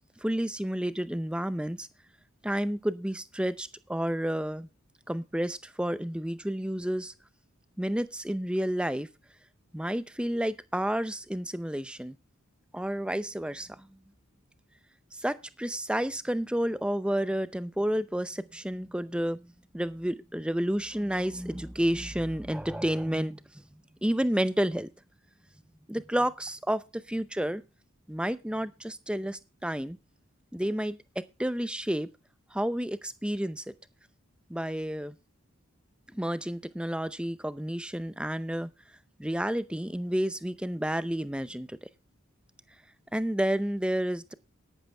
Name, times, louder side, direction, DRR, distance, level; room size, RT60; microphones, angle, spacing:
voice 1, 0.2-1.9 2.4-4.7 5.1-7.1 7.8-9.1 9.7-12.2 12.7-13.9 15.1-23.6 24.0-24.9 25.9-27.6 28.1-30.0 30.5-32.1 32.5-33.6 34.5-35.2 36.1-38.7 39.2-41.9 43.1-44.3, equal, 5° right, 14 dB, 0.6 m, -30 dB
12.5 x 12.0 x 3.4 m, 0.28 s
head